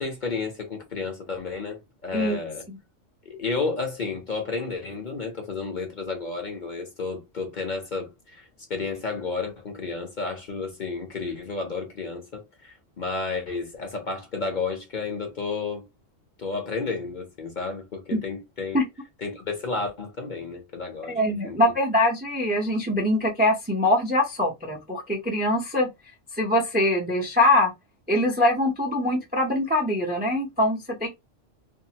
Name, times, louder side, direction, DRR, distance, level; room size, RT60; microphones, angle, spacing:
voice 1, 0.0-2.6 3.3-15.8 16.4-18.8 19.2-21.2 21.4-21.6, left 4 dB, 45° left, 0.8 m, -32 dB
voice 2, 21.1-25.9 26.3-27.7 28.1-31.1, left 1 dB, 10° right, 0.4 m, -23 dB
2.6 x 2.4 x 2.8 m
omnidirectional pair, 1.3 m